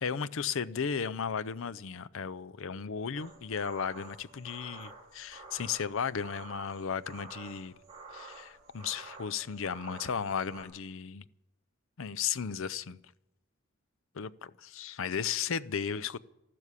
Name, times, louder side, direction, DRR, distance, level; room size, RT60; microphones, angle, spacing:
voice 1, 0.0-7.7 8.1-11.2 12.0-13.0 14.1-16.2, left 6 dB, 65° left, 0.6 m, -35 dB
sound 1, 3.1-10.6, right 3 dB, 30° right, 3.7 m, -50 dB
13.5 x 12.0 x 8.2 m
head